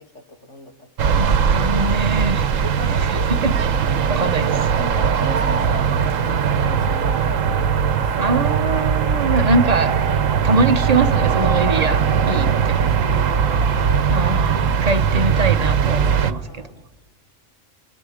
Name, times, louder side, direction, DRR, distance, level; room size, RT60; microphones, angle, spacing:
voice 1, 0.0-1.2 2.5-3.3 4.8-8.4 12.3-14.3 16.5-16.8, equal, 65° left, 3 dB, 3.1 m, -37 dB
sound 1, 1.0-16.3, right 7 dB, 80° right, 1.3 m, -19 dB
voice 2, 1.2-2.5 3.4-3.5 3.9-4.7 8.2-9.9 10.4-12.5 12.8-12.9 14.1-16.7, right 2 dB, 30° right, 7 dB, 1.2 m, -22 dB
Bark, 8.4-9.2 10.4-11.5 12.3-12.4 13.5-14.2, left 1 dB, 20° left, 5.6 m, -38 dB
29.5 x 27.0 x 5.1 m, 1.3 s
omnidirectional pair, 1.3 m